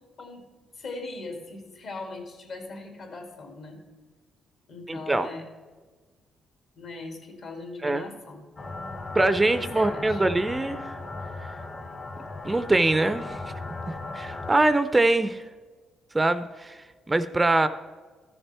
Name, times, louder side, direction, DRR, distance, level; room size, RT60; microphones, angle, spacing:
voice 1, 0.2-3.8 4.7-5.4 6.7-8.4 9.5-10.2, left 3 dB, 60° left, 3 dB, 2.4 m, -40 dB
voice 2, 4.9-5.3 7.8-8.0 9.1-11.0 12.4-13.4 13.9-15.4 16.1-17.7, right 2 dB, 15° right, 12 dB, 0.5 m, -23 dB
sound 1, 8.6-14.5, left 2 dB, 35° left, 1.5 m, -37 dB
13.5 x 6.8 x 4.3 m, 1.4 s
cardioid pair, 90°, 0 cm